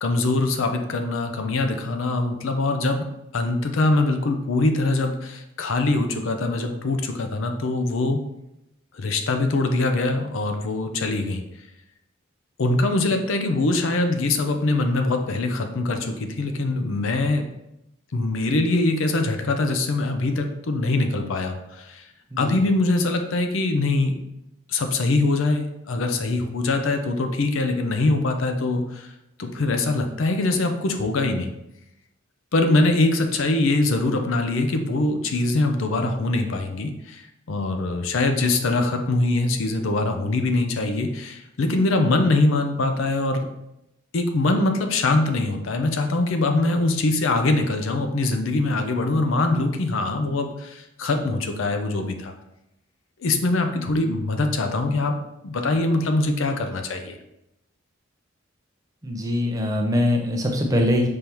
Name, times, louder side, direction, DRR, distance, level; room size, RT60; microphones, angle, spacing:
voice 1, 0.0-3.0 3.3-8.2 8.9-11.4 12.6-17.5 18.1-22.0 22.4-24.1 24.7-29.1 29.4-31.5 32.5-43.5 44.1-52.3 53.2-55.2 55.4-57.2, left 2 dB, 75° left, 5 dB, 0.5 m, -23 dB
voice 2, 59.0-61.1, left 1 dB, 15° right, 1 dB, 0.5 m, -22 dB
5.3 x 3.3 x 2.9 m, 0.86 s
head